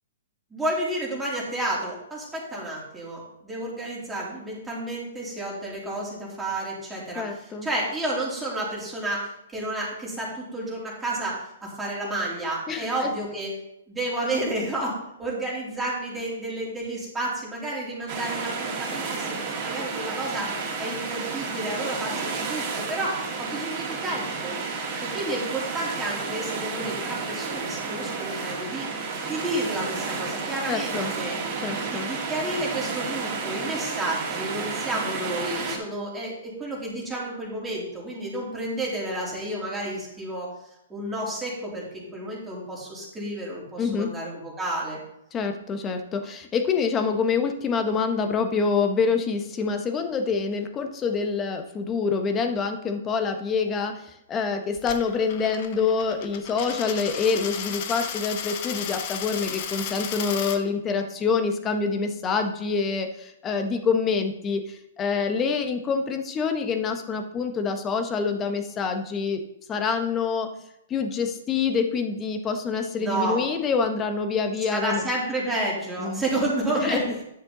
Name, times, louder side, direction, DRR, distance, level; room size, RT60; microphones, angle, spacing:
voice 1, 0.5-13.5 13.9-20.5 20.8-24.6 25.0-28.9 29.3-31.4 31.8-40.5 40.9-45.0 73.0-73.4 74.7-77.1, right 1 dB, 10° right, -5 dB, 3.4 m, -31 dB
voice 2, 7.1-7.7 12.7-13.1 30.7-31.1 31.6-32.1 43.8-44.1 45.3-69.4 69.7-70.5 70.9-75.1 76.0-76.2 76.7-77.1, left 5 dB, 20° left, 6 dB, 1.1 m, -26 dB
sound 1, 18.1-35.8, right 4 dB, 40° right, 2.3 m, -31 dB
Coin (dropping), 54.8-60.6, left 8 dB, 50° left, 1.0 m, -34 dB
10.0 x 6.7 x 4.0 m, 0.80 s
hypercardioid pair, 125°, 0 cm